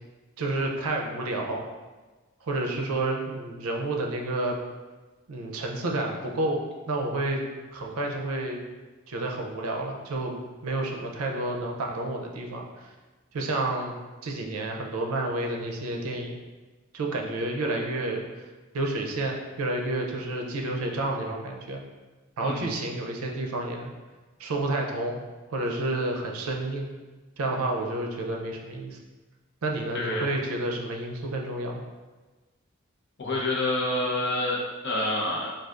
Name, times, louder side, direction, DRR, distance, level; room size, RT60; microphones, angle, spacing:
voice 1, 0.4-1.7 2.4-4.6 5.3-6.6 6.9-7.4 7.7-8.6 9.1-12.6 13.3-13.9 14.2-16.4 16.9-18.2 18.7-21.8 22.4-23.9 24.4-25.2 25.5-26.9 27.4-29.0 29.6-31.8, right 2 dB, 85° right, 1 dB, 0.5 m, -30 dB
voice 2, 29.9-30.3 33.2-35.5, left 1 dB, 55° left, -2 dB, 0.7 m, -28 dB
4.7 x 2.4 x 2.4 m, 1.3 s
head